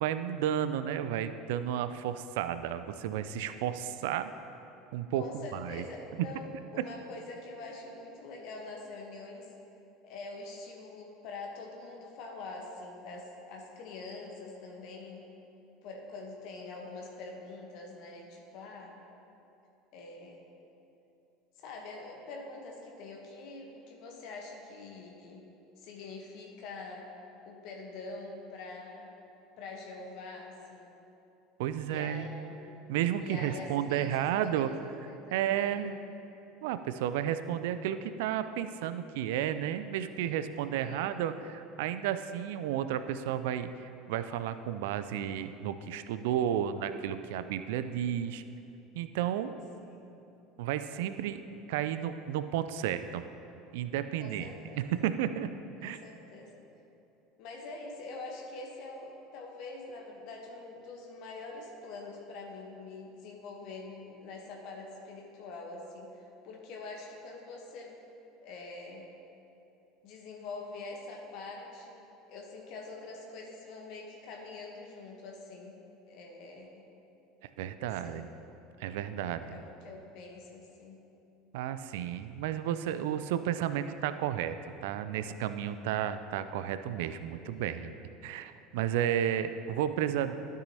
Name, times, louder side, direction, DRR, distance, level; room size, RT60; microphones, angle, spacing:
voice 1, 0.0-4.3 4.9-5.8 6.2-6.3 31.6-32.3 32.9-34.7 35.3-36.0 36.6-48.4 48.9-49.6 50.6-51.4 51.7-53.2 53.7-54.5 54.8-55.5 55.8-56.0 77.6-78.3 78.8-79.6 81.5-84.6 84.8-87.9 88.2-90.3, right 10 dB, 65° right, 11 dB, 0.3 m, -32 dB
voice 2, 5.1-9.5 10.0-15.2 15.8-18.9 19.9-20.5 21.6-25.4 25.8-27.1 27.5-29.1 29.6-30.9 31.9-32.7 33.2-34.7 35.1-35.9 40.8-41.1 49.8-50.1 54.2-54.9 55.8-56.5 57.4-68.0 68.4-69.1 70.0-72.0 72.3-75.8 76.1-76.9 77.8-78.2 79.5-81.0 87.4-87.8, left 3 dB, 55° left, 0 dB, 1.0 m, -45 dB
12.5 x 6.2 x 2.8 m, 2.8 s
figure-of-eight pair, 70°, 0 cm